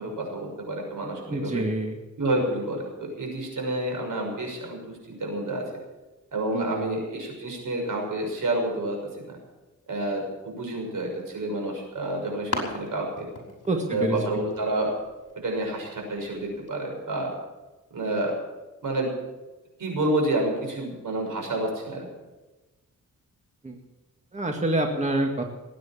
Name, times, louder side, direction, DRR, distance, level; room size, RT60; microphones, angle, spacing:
voice 1, 0.0-1.6 2.2-5.7 6.3-9.0 9.3-9.4 9.9-13.3 13.9-15.0 15.4-17.3 17.9-18.4 18.8-19.1 19.8-22.1, right 1 dB, 75° right, 2 dB, 6.3 m, -29 dB
voice 2, 1.3-2.0 6.5-6.8 13.7-14.2 23.6-23.8 24.3-25.4, right 1 dB, 20° right, 3 dB, 2.0 m, -26 dB
sound 1, 11.6-16.7, left 3 dB, 50° left, 5.4 m, -39 dB
19.5 x 9.4 x 7.4 m, 1.1 s
cardioid pair, 95°, 32 cm